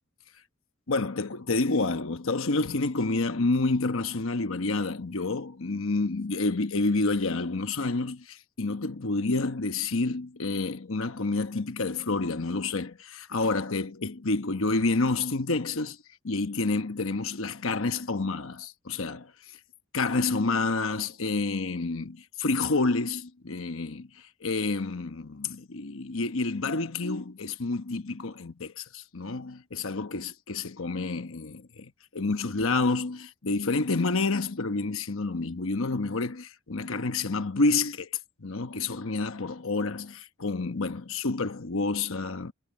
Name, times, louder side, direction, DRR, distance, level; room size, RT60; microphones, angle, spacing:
voice 1, 0.9-16.0 16.2-19.6 19.9-42.5, left 3 dB, 65° left, 1.1 m, -29 dB
head